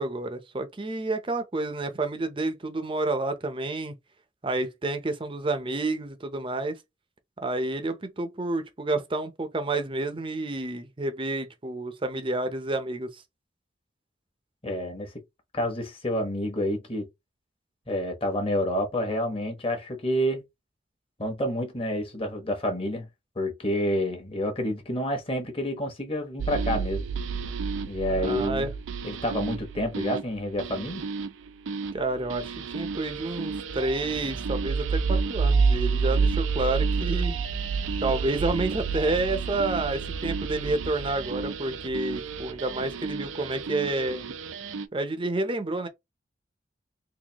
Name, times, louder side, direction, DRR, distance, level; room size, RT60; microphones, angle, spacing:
voice 1, 0.0-3.9 4.4-6.8 7.4-13.2 28.1-28.7 31.9-37.4 38.0-44.3 44.9-45.9, right 2 dB, 25° right, 0.6 m, -29 dB
voice 2, 14.6-15.1 15.5-17.1 17.9-20.4 21.2-23.1 23.4-27.0 27.9-28.7 29.0-31.0, equal, 30° left, 1.1 m, -28 dB
sound 1, 26.4-44.9, right 5 dB, 90° right, 0.5 m, -29 dB
4.0 x 2.7 x 2.9 m
head